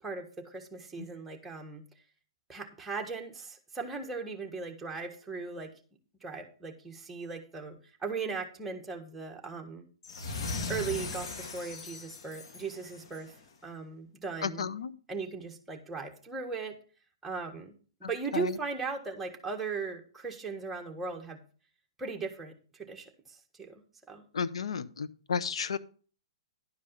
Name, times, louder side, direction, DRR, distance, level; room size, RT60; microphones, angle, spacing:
voice 1, 0.0-1.8 2.5-5.7 6.2-9.9 10.7-13.3 13.6-14.6 15.1-16.7 17.2-17.7 18.0-21.4 22.0-23.8 24.1-24.2, right 4 dB, 5° right, 1 dB, 1.6 m, -38 dB
sound 1, 10.0-13.3, left 3 dB, 65° left, 1.7 m, -38 dB
voice 2, 14.4-14.9 18.3-18.5 24.3-25.8, left 6 dB, 85° left, 15 dB, 0.7 m, -32 dB
11.0 x 5.2 x 5.6 m, 0.39 s
hypercardioid pair, 145°, 3 cm